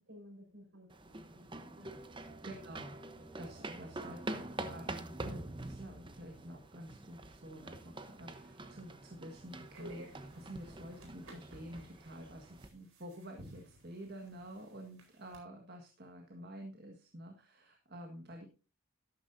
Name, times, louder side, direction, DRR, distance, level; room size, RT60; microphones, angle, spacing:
voice 1, 0.0-1.9 3.2-3.5, equal, 65° right, 3 dB, 5.7 m, -56 dB
Up Metal Stairs Down Metal Stairs, 0.9-12.7, right 2 dB, 25° right, 0.9 m, -46 dB
voice 2, 2.4-3.0 3.4-18.5, equal, 50° right, 2 dB, 1.7 m, -49 dB
sound 1, 9.4-15.4, right 1 dB, 85° right, 4.4 m, -55 dB
12.5 x 12.5 x 2.7 m, 0.32 s
head